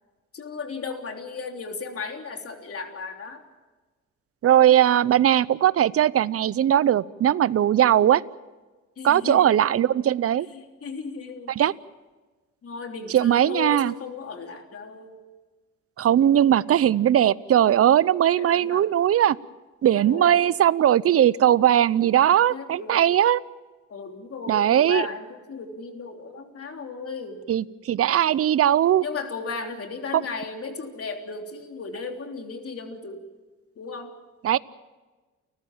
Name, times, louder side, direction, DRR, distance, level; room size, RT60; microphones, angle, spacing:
voice 1, 0.3-3.4 9.0-9.6 10.5-11.5 12.6-15.2 18.4-18.8 19.9-20.5 22.5-23.1 23.9-27.4 29.0-33.2 33.8-34.1, left 4 dB, 50° left, 4 dB, 3.4 m, -35 dB
voice 2, 4.4-8.2 9.0-10.5 11.5-11.7 13.1-13.9 16.0-19.4 19.8-23.4 24.5-25.1 27.5-29.0 30.1-30.2 34.4-34.6, right 11 dB, 50° right, 19 dB, 0.7 m, -19 dB
30.0 x 14.5 x 7.3 m, 1.3 s
cardioid pair, 90°, 30 cm